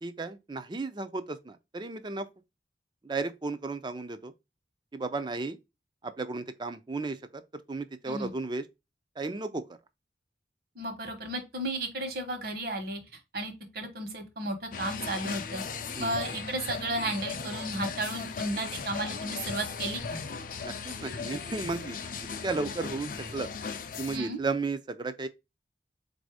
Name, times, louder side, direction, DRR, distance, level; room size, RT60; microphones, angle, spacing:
voice 1, 0.0-2.3 3.0-4.3 4.9-5.6 6.0-7.4 7.7-8.6 9.2-9.6 16.0-16.2 20.6-22.0 22.4-23.5 24.0-25.3, right 3 dB, 25° right, 0.4 m, -34 dB
voice 2, 10.7-13.0 13.3-15.6 16.0-20.2 24.1-24.4, right 1 dB, 60° right, 1.2 m, -34 dB
sound 1, 14.7-24.2, left 5 dB, 50° left, 0.5 m, -37 dB
4.1 x 2.7 x 4.7 m
head